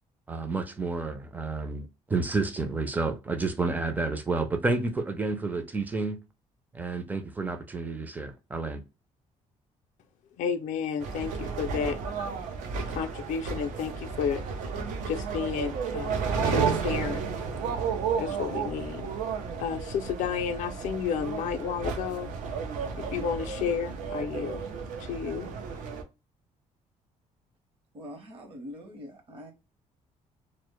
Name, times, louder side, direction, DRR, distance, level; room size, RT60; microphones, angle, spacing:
voice 1, 0.3-6.2 6.7-8.8, right 3 dB, 15° right, 0.4 m, -30 dB
voice 2, 10.4-12.0 12.9-14.5 15.1-17.2 18.2-19.1 19.6-22.3 23.0-24.7 25.0-25.5, left 7 dB, 75° left, 0.4 m, -32 dB
sound 1, 11.0-26.0, right 5 dB, 90° right, 0.5 m, -32 dB
voice 3, 27.9-29.5, equal, 45° right, 0.8 m, -43 dB
2.0 x 2.0 x 3.0 m
cardioid pair, 140°, 13 cm